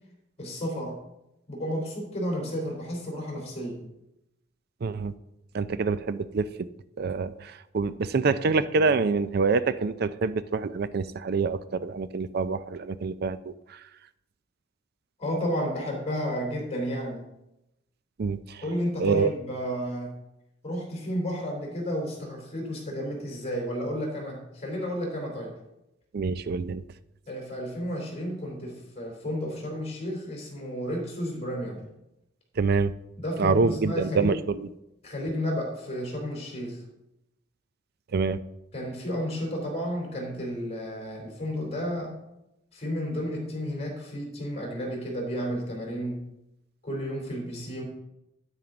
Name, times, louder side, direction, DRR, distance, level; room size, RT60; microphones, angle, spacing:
voice 1, 0.4-1.0 1.5-3.8 15.2-17.3 18.6-20.2 20.6-25.5 27.3-31.8 33.2-34.3 35.0-36.8 38.7-42.1 42.7-46.2 46.8-47.8, equal, 35° left, 0 dB, 3.5 m, -32 dB
voice 2, 4.8-5.1 5.5-6.7 7.0-13.8 18.2-18.6 19.0-19.3 26.1-26.8 32.6-32.9 33.4-34.7 38.1-38.4, right 4 dB, 55° right, 14 dB, 0.4 m, -26 dB
9.2 x 9.1 x 3.9 m, 0.88 s
head